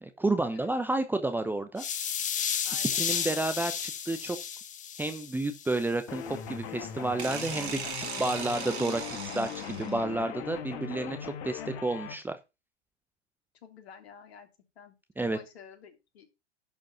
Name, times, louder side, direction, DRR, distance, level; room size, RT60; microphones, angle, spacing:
voice 1, 0.0-1.8 2.8-4.4 5.0-12.4 15.2-15.4, right 2 dB, 5° right, 9 dB, 0.8 m, -31 dB
sound 1, 1.8-5.8, left 8 dB, 20° left, 1.4 m, -33 dB
voice 2, 2.6-3.5 11.6-11.8 13.6-14.5 14.7-15.0 15.3-16.3, left 6 dB, 65° left, 5 dB, 3.2 m, -50 dB
sound 2, 6.1-12.1, left 9 dB, 40° left, 1.9 m, -39 dB
sound 3, 7.2-10.1, right 6 dB, 65° right, 3.1 m, -38 dB
11.0 x 5.1 x 5.8 m, 0.26 s
figure-of-eight pair, 105°, 34 cm